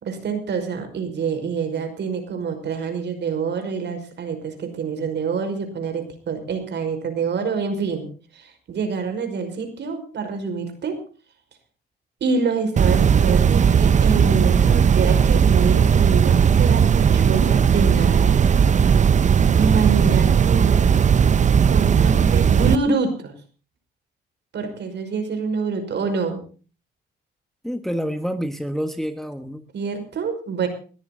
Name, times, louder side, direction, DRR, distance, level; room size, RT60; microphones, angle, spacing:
voice 1, 0.0-11.0 12.2-18.4 19.6-20.9 21.7-23.3 24.5-26.4 29.7-30.7, right 5 dB, 60° right, 7 dB, 5.4 m, -26 dB
sound 1, 12.8-22.8, right 7 dB, 35° right, 0.6 m, -16 dB
voice 2, 27.6-29.6, equal, ahead, 8 dB, 1.5 m, -28 dB
21.0 x 14.0 x 4.0 m, 0.38 s
cardioid pair, 90°, 20 cm